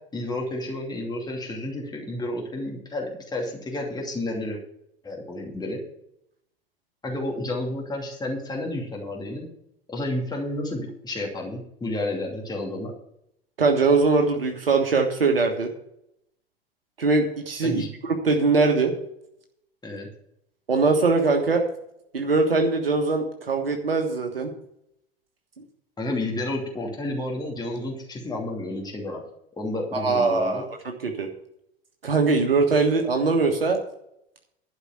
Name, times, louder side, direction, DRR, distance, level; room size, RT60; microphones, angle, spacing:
voice 1, 0.1-4.6 5.0-5.8 7.0-9.5 9.9-12.9 17.6-17.9 19.8-20.1 26.0-29.2 29.6-30.6, left 1 dB, 15° left, -1 dB, 2.7 m, -31 dB
voice 2, 13.6-15.7 17.0-18.9 20.7-21.6 22.1-24.5 29.9-30.6 31.0-31.3 32.0-33.8, right 3 dB, 75° right, 3 dB, 1.4 m, -21 dB
11.5 x 5.1 x 8.6 m, 0.75 s
figure-of-eight pair, 80°, 29 cm